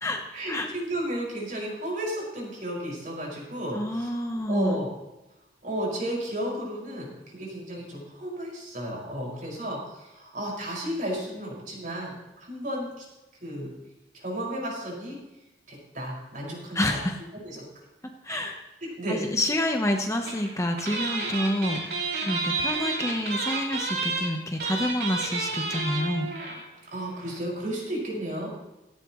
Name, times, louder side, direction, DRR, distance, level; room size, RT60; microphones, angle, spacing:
voice 1, 0.3-4.1 4.5-4.9 5.6-13.1 13.4-13.7 14.1-15.2 15.7-17.0 17.3-17.6 18.3-18.5 19.0-19.2 26.9-28.6, right 1 dB, 45° right, -3 dB, 5.7 m, -33 dB
voice 2, 3.7-4.8 16.7-17.2 18.2-18.6 19.1-26.3, left 1 dB, 15° left, 3 dB, 1.0 m, -28 dB
sound 1, 20.3-20.5 20.8-26.7 26.9-27.0 27.2-27.4, right 3 dB, 65° right, 5.3 m, -30 dB
16.5 x 15.0 x 3.2 m, 1.0 s
head